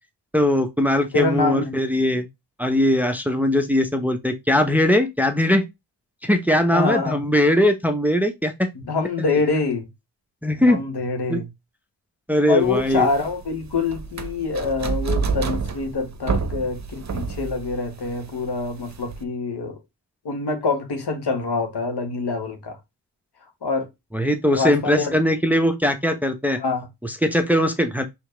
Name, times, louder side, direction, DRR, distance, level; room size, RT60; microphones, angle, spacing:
voice 1, 0.3-2.3 2.6-5.6 6.2-8.7 10.4-10.8 11.3-11.4 12.3-13.1 24.1-26.6 27.0-28.1, left 1 dB, 5° right, 0.9 m, -20 dB
voice 2, 1.1-1.8 6.7-7.2 8.9-9.9 10.7-11.5 12.5-19.7 20.2-22.8 23.6-23.9 24.5-25.2 26.6-26.9, left 3 dB, 60° left, 1.7 m, -25 dB
sound 1, 12.6-19.2, right 5 dB, 40° right, 1.0 m, -29 dB
4.6 x 3.5 x 3.2 m
cardioid pair, 60°, 44 cm